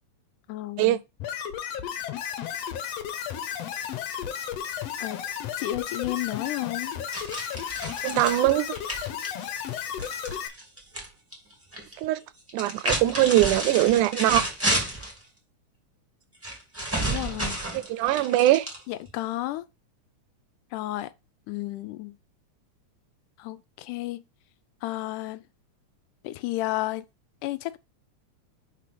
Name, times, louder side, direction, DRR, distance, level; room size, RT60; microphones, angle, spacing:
voice 1, 0.5-1.0 5.0-5.2 5.6-6.9 17.1-17.6 18.9-19.6 20.7-21.1 21.5-22.1 23.4-24.2 24.8-25.4 26.2-27.0 27.4-27.8, left 16 dB, 90° left, 2.1 m, -32 dB
sound 1, 1.2-10.5, left 9 dB, 70° left, 1.7 m, -33 dB
sound 2, 7.1-11.1 11.3-11.9 12.5-15.2 16.4-19.1, right 1 dB, 5° right, 1.3 m, -31 dB
voice 2, 8.0-8.7 12.0-12.2 12.5-14.4 17.7-18.7, right 15 dB, 85° right, 2.0 m, -21 dB
4.9 x 4.1 x 5.9 m
omnidirectional pair, 3.5 m